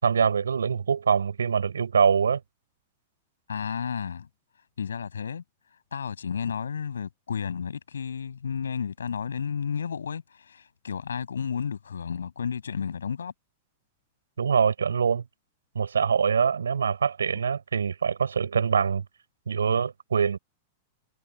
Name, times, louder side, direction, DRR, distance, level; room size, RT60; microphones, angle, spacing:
voice 1, 0.0-2.4 14.4-15.2 15.7-19.0 19.5-20.4, right 6 dB, 75° right, 6.3 m, -24 dB
voice 2, 3.5-4.3 4.8-5.4 5.9-13.3, left 7 dB, 75° left, 7.6 m, -32 dB
figure-of-eight pair, 95°, 0 cm